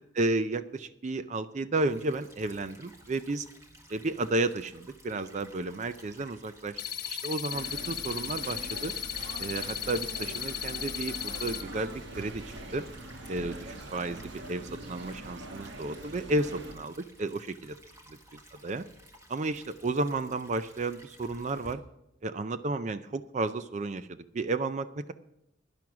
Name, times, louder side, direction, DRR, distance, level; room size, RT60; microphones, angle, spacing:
voice 1, 0.1-3.5 3.9-6.8 7.1-8.9 9.4-12.8 13.3-17.8 18.3-18.9 19.3-21.8 22.2-25.1, right 2 dB, 35° right, 12 dB, 0.4 m, -32 dB
Stream / Trickle dribble, 1.9-21.7, equal, 15° right, 1.4 m, -55 dB
sound 1, 6.8-11.6, left 10 dB, 50° left, 1.2 m, -36 dB
sound 2, 7.5-16.8, right 1 dB, 65° right, 1.2 m, -43 dB
11.0 x 10.5 x 6.0 m, 0.83 s
head